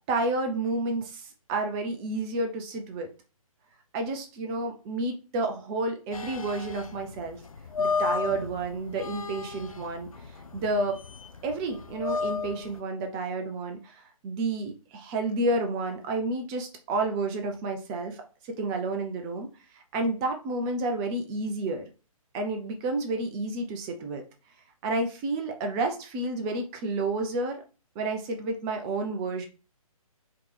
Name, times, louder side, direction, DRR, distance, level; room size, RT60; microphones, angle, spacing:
voice 1, 0.1-3.1 3.9-7.4 7.8-10.1 10.5-11.0 11.4-18.2 18.4-19.5 19.7-21.8 22.3-24.2 24.8-27.6 28.0-29.5, right 2 dB, 10° right, 4 dB, 0.4 m, -30 dB
sound 1, 6.1-12.8, left 4 dB, 70° left, 0.6 m, -33 dB
5.0 x 2.8 x 3.3 m, 0.34 s
figure-of-eight pair, 135°, 18 cm